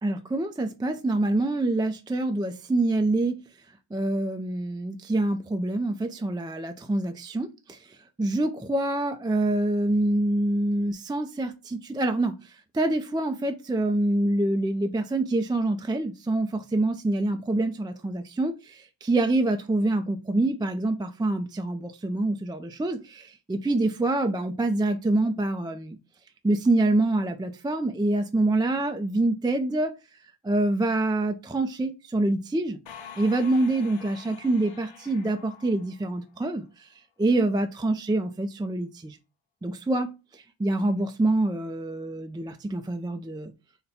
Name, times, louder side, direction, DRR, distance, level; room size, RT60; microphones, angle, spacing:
voice 1, 0.0-3.4 3.9-26.0 26.4-29.9 30.4-32.8 33.2-36.9 37.2-39.2 39.6-43.5, right 2 dB, 10° right, 0.3 m, -26 dB
sound 1, 32.9-36.5, left 7 dB, 80° left, 0.8 m, -47 dB
4.0 x 2.2 x 4.1 m
wide cardioid pair, 70°, 45 cm